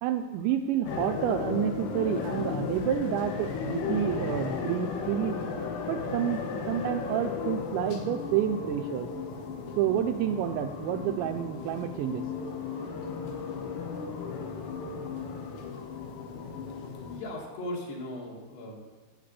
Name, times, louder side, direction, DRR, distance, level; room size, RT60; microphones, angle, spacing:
voice 1, 0.0-5.4 5.9-6.4 6.7-9.1 9.8-12.3, right 10 dB, 85° right, 6 dB, 2.7 m, -29 dB
sound 1, 0.9-17.2, left 5 dB, 80° left, 4.3 m, -35 dB
voice 2, 17.1-18.8, left 1 dB, 55° left, -2 dB, 4.5 m, -38 dB
15.5 x 8.6 x 8.3 m, 1.3 s
omnidirectional pair, 5.7 m